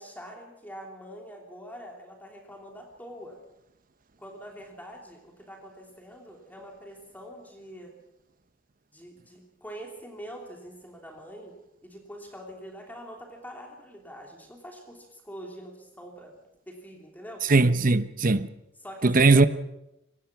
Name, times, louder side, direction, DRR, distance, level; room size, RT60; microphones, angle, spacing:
voice 1, 0.0-3.4 4.2-7.9 8.9-16.3 16.7-17.4 18.8-19.5, equal, 10° left, 3.0 m, -44 dB
voice 2, 17.5-18.5 19.0-19.5, right 3 dB, 45° right, 0.9 m, -19 dB
24.0 x 18.0 x 6.1 m
head